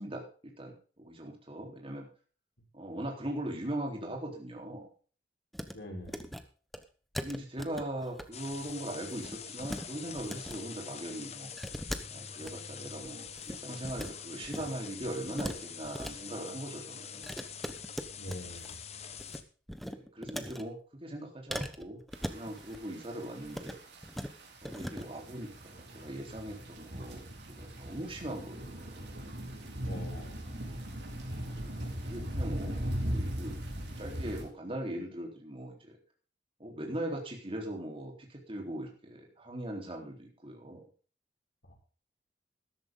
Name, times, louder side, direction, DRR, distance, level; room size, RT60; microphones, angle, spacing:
voice 1, 0.0-2.1 2.7-4.9 7.2-11.5 12.1-17.3 19.8-22.0 22.3-23.8 24.6-29.1 31.7-33.6 34.0-36.0 36.6-40.8, right 1 dB, 30° right, 1 dB, 3.7 m, -40 dB
sound 1, 5.5-5.7 6.0-6.4 6.7-6.8 7.1-8.2 8.5-8.7 9.0-9.8 10.1-10.6 11.6-12.5 13.0-14.1 14.4-14.7 15.0-16.1 17.2-18.7 19.0-19.4 19.7-20.6 21.5-22.8 23.4-23.8 24.0-24.3 24.6-25.0, equal, ahead, 1.0 m, -40 dB
voice 2, 5.7-6.2 18.2-18.8 29.9-30.6 41.7-41.8, left 1 dB, 80° left, 0 dB, 5.9 m, -44 dB
sound 2, 8.3-19.4, left 7 dB, 35° left, 1.1 m, -45 dB
sound 3, 22.1-34.4, equal, 70° right, 4.2 m, -39 dB
13.5 x 12.5 x 3.8 m, 0.39 s
head